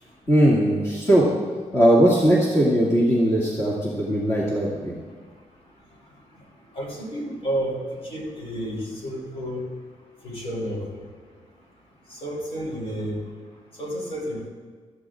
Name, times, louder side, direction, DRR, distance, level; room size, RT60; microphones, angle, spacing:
voice 1, 0.3-1.3 1.7-4.9, right 1 dB, 20° left, -6 dB, 2.2 m, -19 dB
voice 2, 6.7-7.8 8.1-9.6 10.2-11.0 12.1-13.2 13.8-14.5, equal, 50° left, -2 dB, 3.8 m, -30 dB
16.0 x 13.5 x 2.5 m, 1.5 s
cardioid pair, 120°, 13 cm